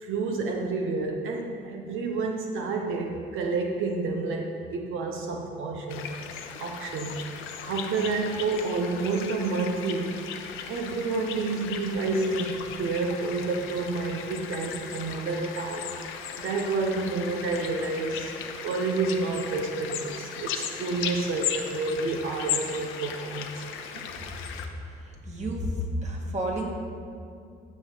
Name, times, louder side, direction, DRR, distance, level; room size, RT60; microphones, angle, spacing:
voice 1, 0.0-6.1 6.6-10.3 10.7-18.3 18.6-23.6, right 3 dB, 80° right, 2 dB, 0.9 m, -29 dB
sound 1, 5.9-24.7, left 8 dB, 90° left, 0.9 m, -37 dB
voice 2, 25.2-25.7 26.0-26.7, right 1 dB, 35° right, 0 dB, 2.1 m, -30 dB
15.5 x 6.5 x 4.0 m, 2.4 s
cardioid pair, 90°, 20 cm